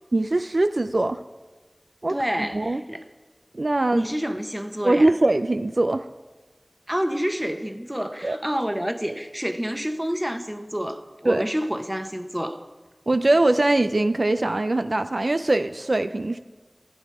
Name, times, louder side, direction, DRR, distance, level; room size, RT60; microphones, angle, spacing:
voice 1, 0.1-1.2 2.0-2.8 3.5-4.1 4.8-6.1 8.2-8.4 11.2-11.5 13.1-16.4, right 2 dB, 75° right, 0.5 m, -22 dB
voice 2, 2.1-3.0 3.9-5.1 6.9-12.6, equal, 15° right, 1.2 m, -28 dB
19.5 x 13.5 x 4.8 m
wide cardioid pair, 45°, 0 cm